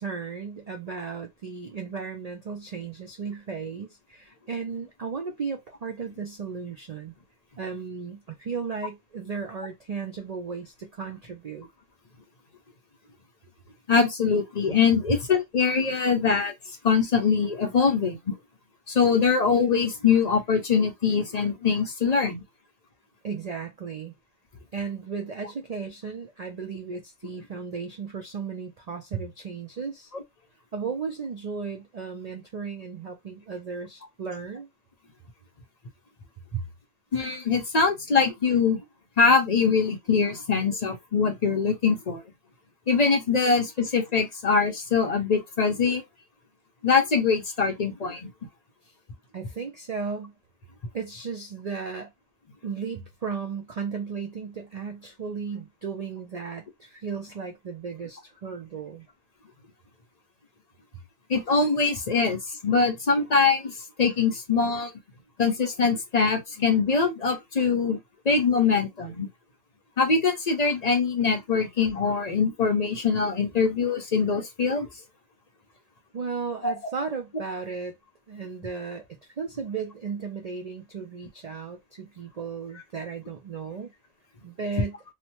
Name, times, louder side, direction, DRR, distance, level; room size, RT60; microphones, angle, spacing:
voice 1, 0.0-7.1 7.6-11.7 23.2-24.1 24.7-30.1 30.7-34.7 36.5-36.7 49.3-50.3 50.9-52.1 52.6-59.1 76.1-77.9 78.3-83.9 84.4-85.0, right 5 dB, 80° right, 0.3 m, -35 dB
voice 2, 13.9-16.5 16.8-18.3 18.9-22.4 30.1-30.2 37.1-38.8 39.2-42.2 42.9-46.0 46.8-48.3 61.3-64.9 65.4-68.0 68.3-69.3 70.0-74.9 76.6-76.7, left 5 dB, 50° left, 0.5 m, -23 dB
2.9 x 2.1 x 2.8 m
omnidirectional pair, 1.3 m